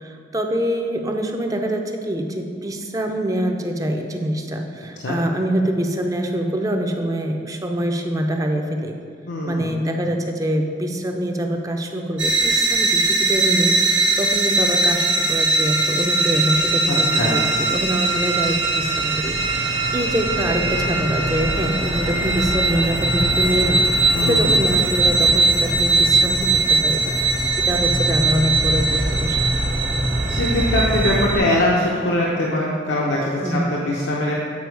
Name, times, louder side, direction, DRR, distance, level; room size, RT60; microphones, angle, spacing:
voice 1, 0.0-9.0 9.5-29.4 33.4-33.7, right 1 dB, 20° right, 3 dB, 0.4 m, -25 dB
voice 2, 9.3-9.8 16.9-17.4 24.1-24.6 30.3-34.3, left 1 dB, 80° left, -3 dB, 0.8 m, -22 dB
sound 1, 12.2-31.4, right 2 dB, 80° right, 1.3 m, -20 dB
8.4 x 4.7 x 4.6 m, 2.2 s
head